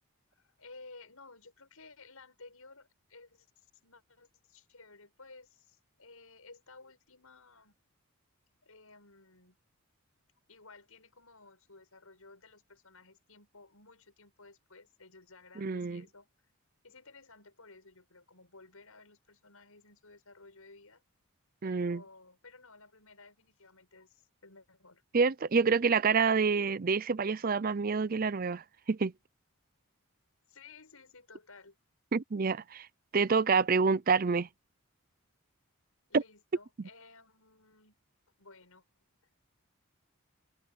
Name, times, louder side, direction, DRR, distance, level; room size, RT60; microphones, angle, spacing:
voice 1, 0.3-7.7 8.6-9.6 10.5-16.3 16.8-21.0 21.6-25.0 30.5-31.7 36.1-38.0 38.4-38.8, left 3 dB, 80° left, 6.5 m, -56 dB
voice 2, 15.6-16.0 21.6-22.0 25.1-29.1 32.1-32.9 33.1-34.5 36.1-36.2, right 5 dB, 40° right, 0.5 m, -27 dB
head